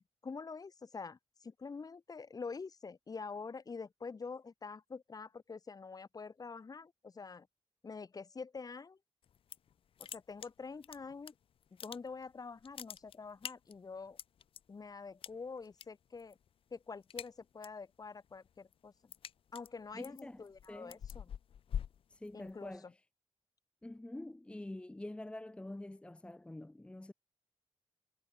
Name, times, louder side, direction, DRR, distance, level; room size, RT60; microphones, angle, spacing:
voice 1, 0.0-7.5 7.8-9.0 10.0-11.3 11.7-14.2 14.7-16.4 16.7-18.9 19.5-21.3 22.3-22.9, left 4 dB, 35° left, 2.2 m, -46 dB
sound 1, 9.2-9.7 10.0-11.3 11.6-12.3 12.6-14.6 15.2-15.9 16.2-16.5 16.8-17.8 18.2-22.8, left 9 dB, 60° left, 0.4 m, -45 dB
voice 2, 19.9-21.0 22.1-22.9 23.8-27.1, left 1 dB, 10° left, 0.9 m, -46 dB
wide cardioid pair, 125°, 10 cm